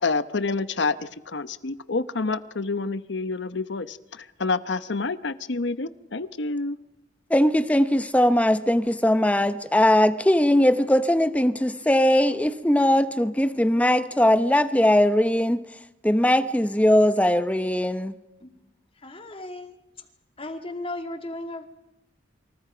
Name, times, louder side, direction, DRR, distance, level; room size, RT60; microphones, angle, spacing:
voice 1, 0.0-6.8, left 3 dB, 65° left, 0.9 m, -28 dB
voice 2, 7.3-15.6 16.0-18.1, left 1 dB, 10° left, 0.8 m, -20 dB
voice 3, 19.0-20.1 20.4-21.7, left 2 dB, 30° left, 2.4 m, -36 dB
28.0 x 25.5 x 5.1 m
head